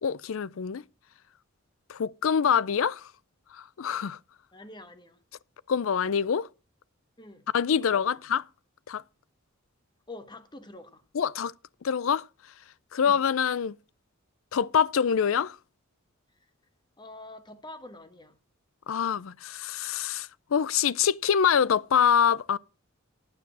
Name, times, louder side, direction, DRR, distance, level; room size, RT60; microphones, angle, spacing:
voice 1, 0.0-0.8 1.9-3.1 3.5-4.2 5.7-6.5 7.5-8.4 8.9-9.0 11.1-11.5 11.8-12.2 12.9-13.8 14.5-15.6 18.9-22.6, left 7 dB, 70° left, 0.5 m, -25 dB
voice 2, 4.5-5.2 7.2-8.2 10.1-11.0 13.0-13.2 17.0-18.4, left 2 dB, 20° left, 1.4 m, -46 dB
9.5 x 9.3 x 6.1 m
head